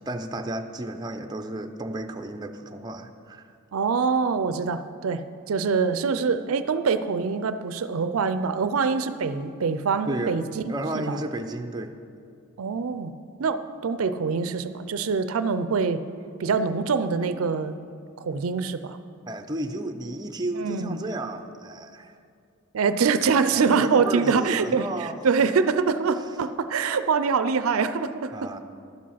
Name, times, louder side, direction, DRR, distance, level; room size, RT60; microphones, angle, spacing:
voice 1, 0.0-3.5 10.1-10.4 10.7-11.9 19.3-22.2 23.5-25.2 28.3-28.6, right 1 dB, 20° right, 5 dB, 0.5 m, -32 dB
voice 2, 3.7-5.2 5.5-11.2 12.6-13.1 13.4-16.0 16.4-17.8 18.2-19.0 20.6-21.0 22.7-24.9 25.2-28.3, right 5 dB, 75° right, 11 dB, 0.4 m, -24 dB
12.0 x 7.5 x 5.7 m, 2.4 s
head